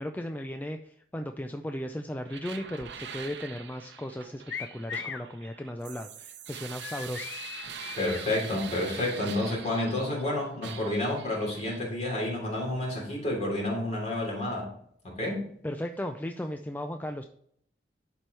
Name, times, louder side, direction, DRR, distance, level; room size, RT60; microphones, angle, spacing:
voice 1, 0.0-7.3 15.6-17.3, left 1 dB, 10° left, 6 dB, 0.3 m, -36 dB
sound 1, 2.3-10.3 10.6-11.8, right 7 dB, 75° right, 0.8 m, -43 dB
sound 2, 4.5-5.3 6.8-8.3, left 7 dB, 80° left, 0.6 m, -38 dB
voice 2, 7.9-14.7 15.0-15.5, left 1 dB, 40° left, -2 dB, 3.2 m, -30 dB
11.0 x 4.5 x 3.2 m, 0.66 s
head